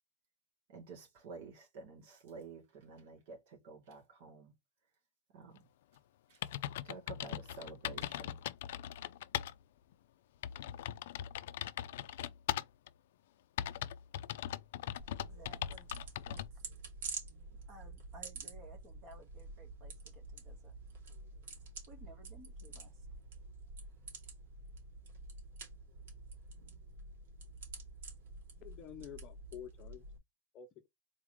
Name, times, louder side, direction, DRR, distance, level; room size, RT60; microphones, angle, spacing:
voice 1, 0.7-4.5 5.3-5.6 6.3-6.4 6.8-8.4, right 4 dB, 55° right, 2.3 m, -51 dB
sound 1, 6.0-6.1 6.4-9.5 9.9-10.0 10.4-12.9 13.6-16.5, left 12 dB, 65° left, 0.4 m, -40 dB
sound 2, 15.0-30.2, right 3 dB, 85° right, 2.5 m, -49 dB
voice 2, 15.2-15.9 16.3-16.6 17.7-20.7 21.9-23.1, right 2 dB, 30° right, 1.5 m, -58 dB
voice 3, 28.5-30.1 30.5-30.9, left 10 dB, 30° left, 0.7 m, -49 dB
3.9 x 3.6 x 3.1 m
supercardioid pair, 175°, 0 cm